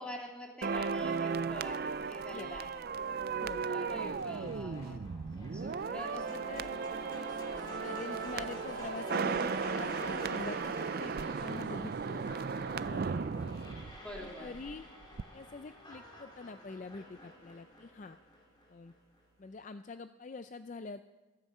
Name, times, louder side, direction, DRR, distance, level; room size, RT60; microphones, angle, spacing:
voice 1, 0.0-2.8 3.6-5.0 5.5-6.8 14.0-14.5, equal, 5° left, -1 dB, 2.5 m, -46 dB
sound 1, 0.6-14.8 15.0-15.2, right 5 dB, 50° right, 0.4 m, -36 dB
sound 2, 2.9-18.9, left 1 dB, 20° left, 2.6 m, -49 dB
voice 2, 3.3-3.7 3.9-5.1 5.9-6.7 7.8-13.0 13.6-13.7 14.2-14.8 15.3-18.2 18.7-18.9 19.4-21.0, left 4 dB, 40° left, 10 dB, 0.4 m, -46 dB
sound 3, 4.0-5.8 6.9-8.5 9.9-11.6 12.9-14.4 15.9-16.7, right 2 dB, 70° right, 2.0 m, -59 dB
15.0 x 14.5 x 5.5 m, 1.2 s
head